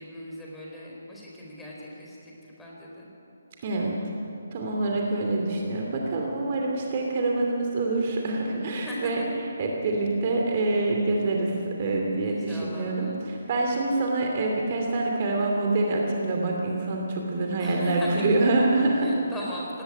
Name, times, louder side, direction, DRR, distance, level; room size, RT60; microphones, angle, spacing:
voice 1, 0.0-3.1 8.9-9.3 12.2-13.2 17.6-18.4 19.0-19.8, left 1 dB, 5° left, -5 dB, 4.4 m, -38 dB
voice 2, 3.6-4.0 4.5-9.2 9.6-19.1, right 2 dB, 35° right, 0 dB, 2.7 m, -26 dB
18.5 x 17.0 x 9.8 m, 2.9 s
figure-of-eight pair, 140°, 0 cm